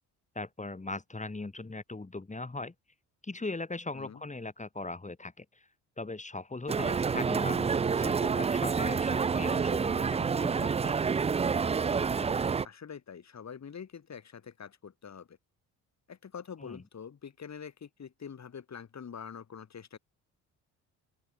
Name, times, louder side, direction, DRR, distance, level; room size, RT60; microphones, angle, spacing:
voice 1, 0.3-2.7 3.2-5.6 6.0-10.9 16.6-16.8, left 3 dB, 20° left, 3.4 m, -39 dB
sound 1, 6.7-12.6, right 5 dB, 15° right, 0.4 m, -28 dB
voice 2, 12.1-15.4 16.1-20.0, left 7 dB, 45° left, 4.6 m, -45 dB
open air
supercardioid pair, 65°, 38 cm